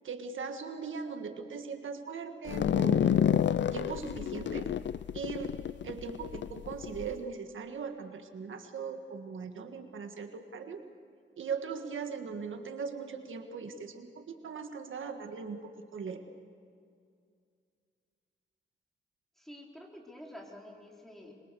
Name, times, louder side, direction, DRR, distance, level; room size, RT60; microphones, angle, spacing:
voice 1, 0.0-3.3 3.7-4.7 5.1-5.6 5.8-10.8 11.4-16.2, right 5 dB, 90° right, 6 dB, 1.7 m, -39 dB
sound 1, 2.5-7.1, left 9 dB, 65° left, 0.5 m, -29 dB
voice 2, 19.4-21.3, left 1 dB, ahead, -1 dB, 4.5 m, -49 dB
26.0 x 22.5 x 6.9 m, 2.3 s
wide cardioid pair, 105°, 20 cm